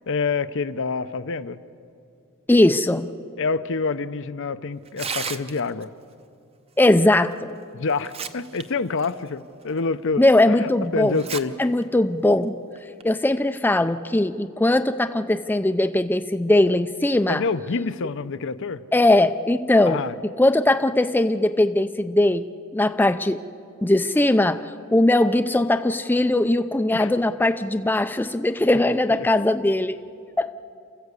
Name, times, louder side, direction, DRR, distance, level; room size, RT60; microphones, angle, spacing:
voice 1, 0.1-1.6 3.4-5.9 7.7-11.5 17.3-18.8 19.8-20.2 26.9-27.1 28.7-29.3, left 4 dB, 60° left, 12 dB, 0.6 m, -27 dB
voice 2, 2.5-3.1 6.8-7.5 10.2-11.2 11.6-12.6 13.0-17.4 18.9-23.4 23.8-30.0 30.4-30.5, left 1 dB, 10° left, 9 dB, 0.4 m, -20 dB
Tearing, 4.9-5.8 7.3-7.4 7.9-8.6 9.0-9.1 9.8-9.9 11.1-11.4 11.8-11.9 12.8-13.0, right 6 dB, 25° right, 0.7 m, -32 dB
29.0 x 14.5 x 8.2 m, 2.4 s
head